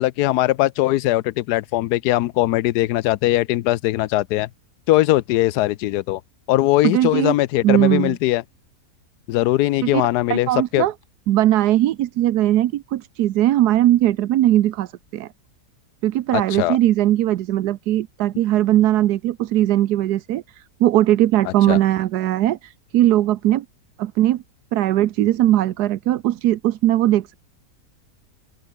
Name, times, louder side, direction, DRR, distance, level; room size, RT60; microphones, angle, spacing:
voice 1, 0.0-4.5 4.9-6.2 6.5-8.4 9.3-10.8 16.3-16.8 21.5-21.8, left 16 dB, 90° left, 1.1 m, -20 dB
voice 2, 6.8-7.3 7.6-8.2 9.8-10.9 11.3-15.3 16.0-23.6 24.0-24.4 24.7-27.3, right 13 dB, 90° right, 1.3 m, -19 dB
open air
omnidirectional pair, 1.7 m